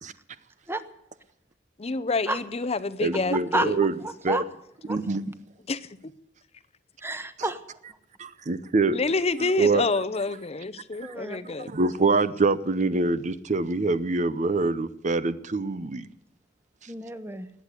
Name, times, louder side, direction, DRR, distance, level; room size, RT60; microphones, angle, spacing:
voice 1, 1.8-3.8 5.7-5.9 8.9-11.7, left 3 dB, 35° left, 0.7 m, -28 dB
voice 2, 3.0-3.9 4.2-4.4 4.9-5.2 8.2-9.0 9.4-9.8 11.0-11.1 11.7-16.1, right 3 dB, 40° right, 0.7 m, -25 dB
voice 3, 7.0-7.6 11.0-11.4 16.9-17.5, right 2 dB, 15° right, 1.2 m, -29 dB
20.0 x 8.4 x 8.3 m
head